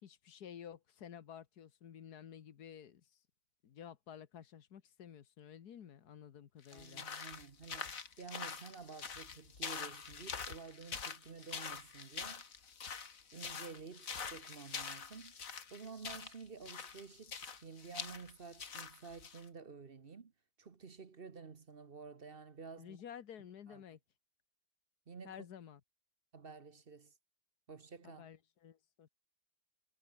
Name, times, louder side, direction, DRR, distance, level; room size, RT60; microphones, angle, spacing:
voice 1, 0.0-3.2 3.6-7.1 22.8-24.0 25.2-25.8 28.0-29.1, left 9 dB, 90° left, 1.8 m, -52 dB
sound 1, 6.6-19.4, left 6 dB, 60° left, 2.2 m, -45 dB
voice 2, 6.7-12.4 13.3-15.4 15.7-20.3 20.6-23.0 23.7-23.8 25.1-25.5 26.3-27.1 27.7-28.3, right 5 dB, 40° right, 1.2 m, -51 dB
omnidirectional pair, 1.6 m